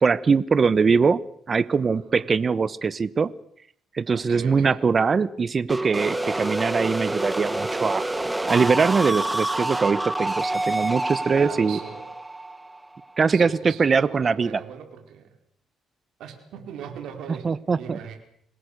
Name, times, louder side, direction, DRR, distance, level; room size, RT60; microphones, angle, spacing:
voice 1, 0.0-1.2 1.5-3.3 3.9-8.0 8.5-11.8 13.2-14.6 17.4-18.0, right 5 dB, 35° right, 18 dB, 1.1 m, -22 dB
voice 2, 4.1-4.8 11.2-12.1 13.3-15.3 16.2-17.5 17.8-18.2, right 8 dB, 80° right, 6 dB, 4.7 m, -39 dB
sound 1, 5.7-13.4, right 2 dB, 10° right, 1.3 m, -28 dB
26.5 x 20.0 x 6.8 m, 0.67 s
cardioid pair, 100°, 0 cm